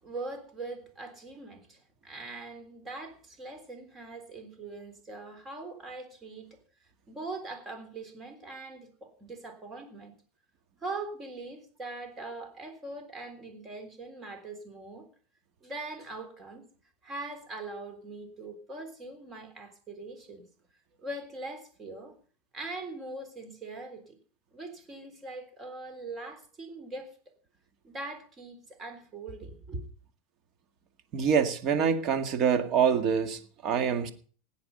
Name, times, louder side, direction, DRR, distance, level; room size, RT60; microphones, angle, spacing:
voice 1, 0.0-6.5 7.1-10.1 10.8-15.1 15.6-16.7 17.0-20.4 21.0-22.1 22.5-24.2 24.5-27.1 27.8-29.8, right 2 dB, 25° right, 3.6 m, -41 dB
voice 2, 31.1-34.1, right 7 dB, 45° right, 1.9 m, -26 dB
17.0 x 9.6 x 5.5 m
supercardioid pair, 135°, 0 cm